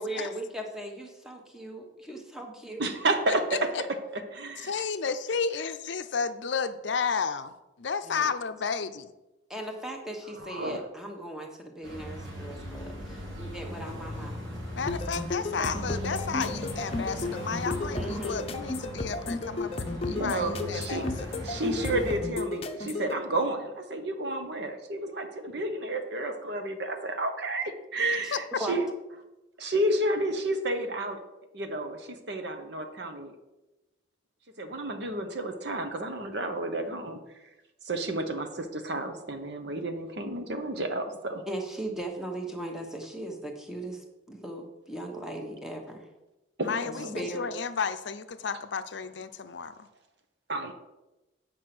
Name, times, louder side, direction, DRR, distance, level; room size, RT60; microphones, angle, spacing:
voice 1, 0.0-2.9 8.0-8.3 9.5-13.0 13.4-14.5 17.7-18.5 28.2-28.8 41.4-46.1 46.8-47.5, right 1 dB, 5° right, 2 dB, 1.1 m, -38 dB
voice 2, 2.8-3.6 4.1-4.7 10.4-10.8 20.1-21.0 21.4-28.9 29.6-31.2 31.5-33.3 34.6-37.2 37.9-41.4 46.6-47.2 50.5-50.7, right 1 dB, 60° right, 6 dB, 1.0 m, -31 dB
voice 3, 3.5-3.8 4.6-9.1 14.7-21.3 28.3-28.4 46.6-49.9, left 5 dB, 65° left, 10 dB, 0.5 m, -32 dB
sound 1, 11.8-22.2, equal, 75° right, 2.6 m, -39 dB
sound 2, 14.9-23.1, left 3 dB, 30° left, 0.7 m, -33 dB
8.4 x 5.3 x 6.0 m, 1.0 s
head